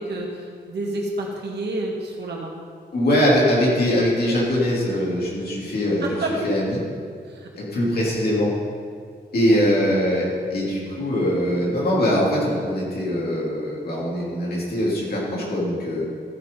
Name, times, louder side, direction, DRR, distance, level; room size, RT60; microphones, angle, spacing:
voice 1, 0.0-2.5 6.0-6.5 7.2-7.5 9.5-9.8, right 2 dB, 70° right, -1 dB, 1.9 m, -29 dB
voice 2, 2.9-6.1 6.4-6.8 7.5-8.5 9.3-16.0, equal, 60° left, -4 dB, 2.9 m, -22 dB
14.0 x 6.1 x 5.4 m, 2.1 s
wide cardioid pair, 175°, 18 cm